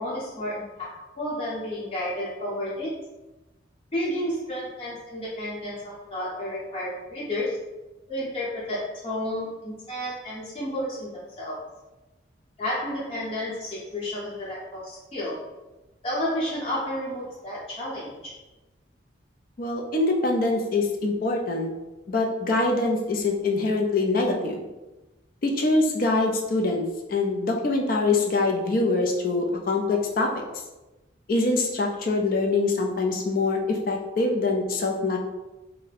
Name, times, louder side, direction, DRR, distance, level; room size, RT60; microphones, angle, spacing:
voice 1, 0.0-2.9 3.9-7.6 8.1-11.6 12.6-15.4 16.0-18.3, left 1 dB, 30° left, -8 dB, 0.9 m, -31 dB
voice 2, 19.6-21.7 22.1-24.6 25.4-30.3 31.3-35.2, left 3 dB, 45° left, 2 dB, 0.4 m, -24 dB
2.6 x 2.1 x 4.0 m, 1.1 s
head